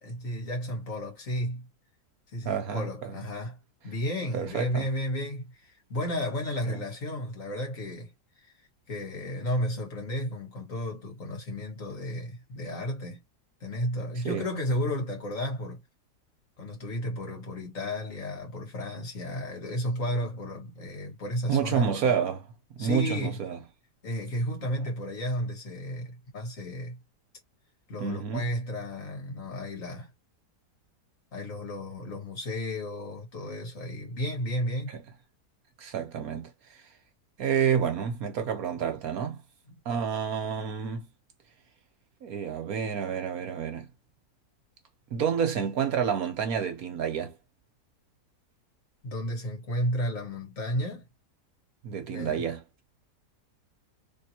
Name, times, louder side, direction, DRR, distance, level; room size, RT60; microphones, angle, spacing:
voice 1, 0.0-1.7 2.3-3.6 3.8-8.1 8.4-8.5 8.9-13.2 13.6-15.8 16.6-22.1 22.8-23.4 24.0-27.0 27.9-30.1 31.3-34.9 39.7-39.8 49.0-51.1 52.1-52.4, equal, 55° left, 2.0 m, -33 dB
voice 2, 2.4-3.2 4.3-4.9 6.7-6.8 14.2-14.5 21.5-22.4 22.7-23.6 28.0-28.5 35.8-36.5 37.4-39.4 39.8-41.1 42.2-43.9 45.1-47.3 51.8-52.6, right 7 dB, 65° right, 1.3 m, -29 dB
3.7 x 2.8 x 2.8 m
omnidirectional pair, 1.7 m